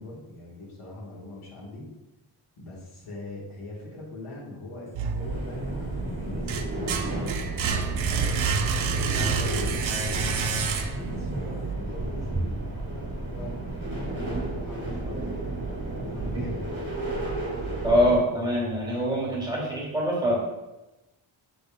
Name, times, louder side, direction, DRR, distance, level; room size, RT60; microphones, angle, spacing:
voice 1, 0.0-1.8 2.6-7.0 7.9-10.3 11.0-15.3 16.0-16.7, left 1 dB, 85° left, -5 dB, 1.6 m, -41 dB
sound 1, 4.9-5.8 6.2-11.2, right 5 dB, 70° right, 0.5 m, -28 dB
sound 2, 5.2-18.2, right 2 dB, 30° right, 1.6 m, -32 dB
voice 2, 17.8-20.4, equal, 10° right, -5 dB, 1.6 m, -24 dB
6.5 x 3.5 x 2.3 m, 1.0 s
wide cardioid pair, 115°, 50 cm